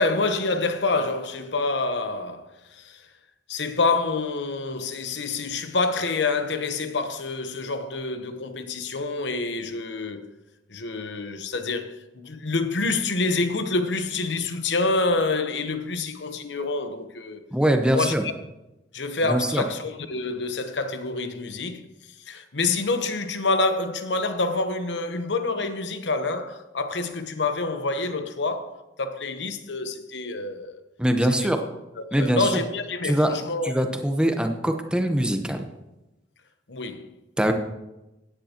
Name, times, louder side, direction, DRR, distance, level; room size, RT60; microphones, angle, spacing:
voice 1, 0.0-3.0 3.5-10.3 10.7-17.4 17.9-18.3 18.9-21.9 22.3-30.8 31.4-31.5 32.0-33.7 36.7-37.1, left 3 dB, 80° left, 1.0 m, -27 dB
voice 2, 17.5-18.2 19.2-19.6 31.0-31.6 32.1-32.4 33.0-33.4 33.6-35.6 37.4-37.5, right 1 dB, 5° right, 1.0 m, -22 dB
16.5 x 9.9 x 3.0 m
head